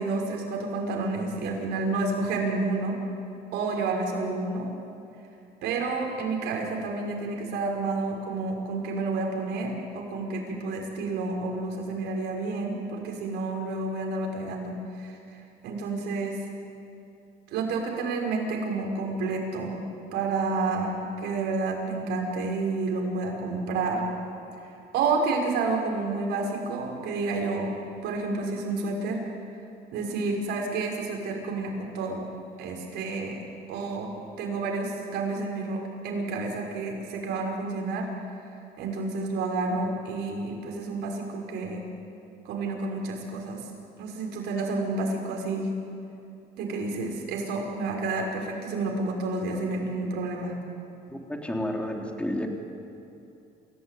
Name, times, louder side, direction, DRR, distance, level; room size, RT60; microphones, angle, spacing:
voice 1, 0.0-3.0 3.5-4.7 5.6-16.4 17.5-19.8 20.1-20.9 21.2-24.0 24.9-27.7 28.0-29.2 29.9-32.3 32.6-33.4 33.7-34.1 34.4-38.1 38.8-41.8 42.4-43.6 44.0-45.7 46.6-50.5, right 3 dB, 85° right, 0 dB, 5.8 m, -30 dB
voice 2, 51.1-52.5, left 1 dB, 5° left, 2 dB, 3.6 m, -31 dB
28.0 x 17.0 x 9.5 m, 2.7 s
cardioid pair, 110°, 17 cm